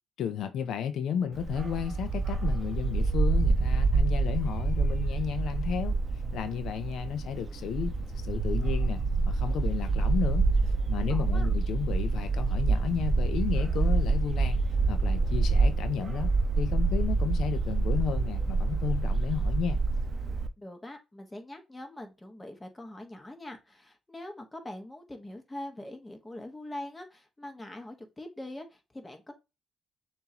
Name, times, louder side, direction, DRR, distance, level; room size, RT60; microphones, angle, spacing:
voice 1, 0.2-6.0 6.3-14.6 14.9-19.8, left 8 dB, 75° left, 0.5 m, -33 dB
Bark, 1.3-20.5, right 3 dB, 40° right, 0.7 m, -27 dB
voice 2, 11.1-11.5 20.6-29.3, left 1 dB, 15° left, 1.3 m, -43 dB
6.7 x 2.6 x 2.9 m
cardioid pair, 90°, 0 cm